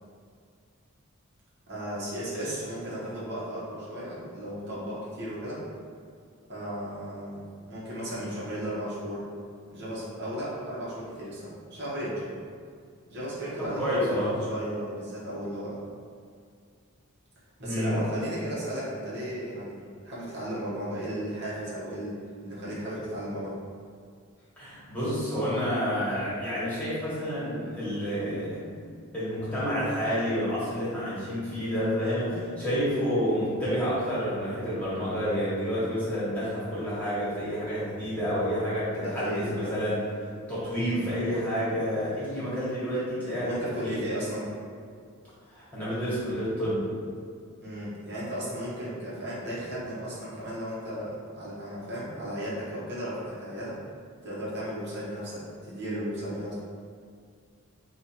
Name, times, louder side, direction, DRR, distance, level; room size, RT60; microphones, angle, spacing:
voice 1, 1.7-5.6 6.5-9.3 9.7-12.3 13.1-15.8 17.6-23.5 39.0-39.8 43.4-44.5 47.6-53.8 54.2-56.5, equal, 50° right, -8 dB, 1.1 m, -35 dB
voice 2, 13.7-14.3 17.6-18.0 24.6-28.8 29.1-40.0 40.5-44.0 45.5-46.9, equal, 5° left, -11 dB, 1.5 m, -29 dB
4.4 x 2.4 x 4.5 m, 2.2 s
head